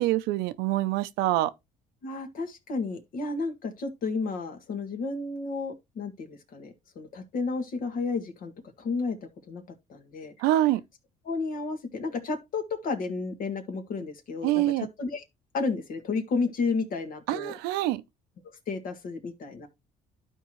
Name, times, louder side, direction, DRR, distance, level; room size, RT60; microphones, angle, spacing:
voice 1, 0.0-1.5 10.4-10.8 14.4-14.9 17.3-18.0, right 15 dB, 85° right, 0.6 m, -25 dB
voice 2, 2.0-8.5 8.8-9.6 9.9-10.3 11.2-15.2 15.5-17.5 18.4-19.7, left 4 dB, 60° left, 1.7 m, -32 dB
12.0 x 4.6 x 3.1 m
cardioid pair, 90°, 16 cm